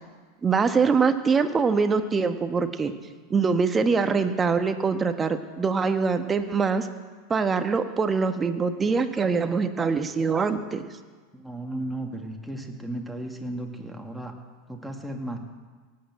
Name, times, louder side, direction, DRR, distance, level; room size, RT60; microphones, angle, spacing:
voice 1, 0.4-2.9 3.3-6.9 7.3-10.8, right 5 dB, 20° right, 8 dB, 1.3 m, -23 dB
voice 2, 11.3-14.3 14.7-15.4, right 1 dB, ahead, 2 dB, 2.3 m, -34 dB
17.5 x 8.7 x 7.9 m, 1.4 s
figure-of-eight pair, 85°, 0 cm